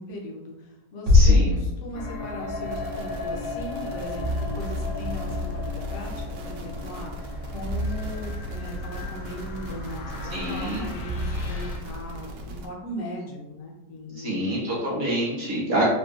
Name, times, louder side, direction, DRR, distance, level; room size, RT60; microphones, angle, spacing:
voice 1, 0.0-14.7, equal, 60° left, -2 dB, 0.9 m, -38 dB
voice 2, 1.1-1.6 10.3-10.9 14.1-15.9, right 1 dB, 45° right, -6 dB, 1.2 m, -27 dB
sound 1, 1.1-3.0, left 3 dB, 60° right, 0.8 m, -20 dB
sound 2, 1.9-11.8, left 2 dB, 90° left, 1.3 m, -33 dB
sound 3, 2.7-12.7, right 1 dB, 85° right, 1.2 m, -38 dB
3.7 x 2.3 x 2.5 m, 0.99 s
omnidirectional pair, 1.8 m